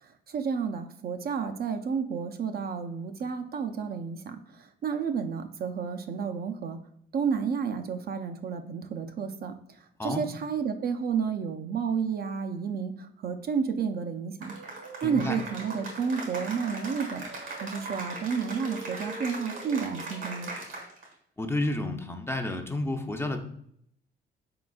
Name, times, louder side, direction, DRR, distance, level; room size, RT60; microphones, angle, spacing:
voice 1, 0.0-6.8 7.1-9.5 10.0-14.5 15.0-17.2 17.6-20.5, right 6 dB, 50° right, 7 dB, 0.5 m, -31 dB
Cheering / Applause, 14.4-21.1, right 2 dB, 80° right, 1.4 m, -39 dB
voice 2, 15.0-15.4 21.4-23.4, left 2 dB, 10° left, 5 dB, 0.5 m, -30 dB
4.1 x 3.8 x 2.3 m, 0.69 s
cardioid pair, 90°, 20 cm